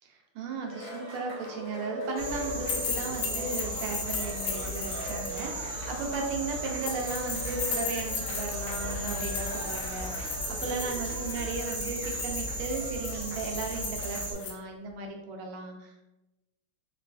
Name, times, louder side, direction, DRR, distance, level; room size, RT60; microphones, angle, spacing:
voice 1, 0.3-16.0, right 3 dB, 85° right, 2 dB, 1.5 m, -36 dB
Cheering, 0.7-14.5, equal, 50° left, 0.6 m, -41 dB
sound 1, 2.2-14.3, right 1 dB, 65° right, 1.2 m, -36 dB
sound 2, 2.7-5.4 6.8-14.5, left 5 dB, 90° left, 1.5 m, -37 dB
3.8 x 2.3 x 2.4 m, 0.98 s
omnidirectional pair, 2.4 m